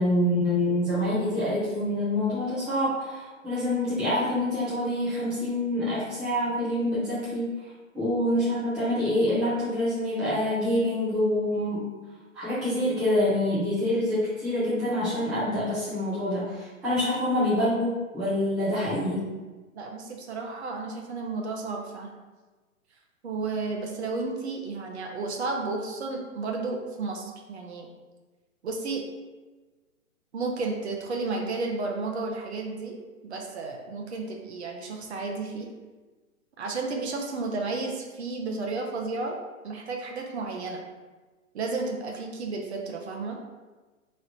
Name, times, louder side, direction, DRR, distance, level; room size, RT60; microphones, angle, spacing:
voice 1, 0.0-7.5 7.9-11.9 12.3-19.2, left 1 dB, ahead, -14 dB, 0.5 m, -26 dB
voice 2, 19.7-22.1 23.2-27.9 28.6-29.0 30.3-35.7 36.6-39.4 39.6-40.8 41.5-43.4, right 3 dB, 50° right, 1 dB, 0.7 m, -32 dB
3.2 x 2.5 x 4.2 m, 1.3 s
hypercardioid pair, 140°, 41 cm